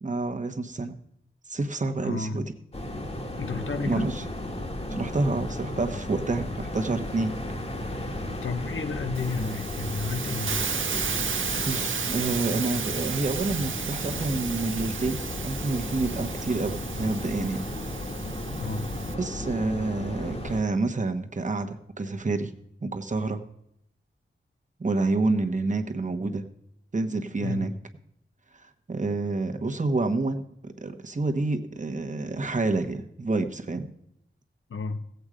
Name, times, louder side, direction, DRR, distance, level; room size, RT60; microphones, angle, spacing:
voice 1, 0.0-1.0 1.5-2.4 3.9-4.2 4.9-7.3 11.6-17.6 19.1-22.5 22.8-23.4 24.8-26.4 26.9-27.7 28.9-30.4 30.8-33.9, right 3 dB, 40° right, 5 dB, 1.2 m, -28 dB
voice 2, 2.0-2.4 3.4-4.1 8.4-10.6 18.6-18.9 27.4-27.7 34.7-35.0, left 4 dB, 80° left, 8 dB, 1.1 m, -32 dB
sound 1, 2.7-20.6, left 1 dB, 30° left, 1.5 m, -34 dB
Hiss, 9.1-19.1, right 6 dB, 75° right, 0.9 m, -33 dB
16.0 x 8.1 x 5.0 m, 0.77 s
wide cardioid pair, 85°, 20 cm